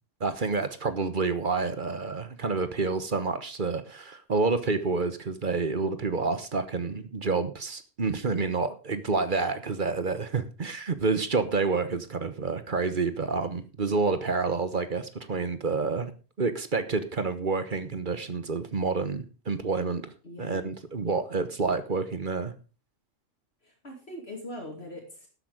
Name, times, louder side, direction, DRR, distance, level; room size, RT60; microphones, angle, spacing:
voice 1, 0.2-16.1 16.4-20.1 20.4-22.5, right 4 dB, 45° right, 11 dB, 1.2 m, -28 dB
voice 2, 20.2-20.6 23.6-25.3, left 1 dB, 55° left, 0 dB, 3.0 m, -41 dB
12.5 x 8.4 x 5.0 m, 0.34 s
omnidirectional pair, 1.3 m